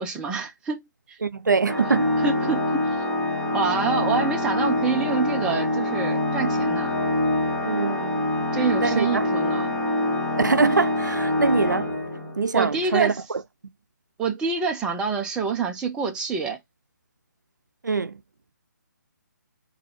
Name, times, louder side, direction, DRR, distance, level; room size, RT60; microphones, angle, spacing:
voice 1, 0.0-1.2 1.9-2.8 3.5-6.9 8.5-9.7 12.5-13.2 14.2-16.6, right 5 dB, 10° right, 0.6 m, -27 dB
voice 2, 1.2-2.1 7.6-8.3 8.8-9.3 10.4-11.9 12.4-13.4 17.8-18.2, right 4 dB, 85° right, 0.5 m, -24 dB
Organ, 1.7-12.5, left 1 dB, 5° left, 1.2 m, -25 dB
3.9 x 2.7 x 4.5 m
figure-of-eight pair, 145°, 10 cm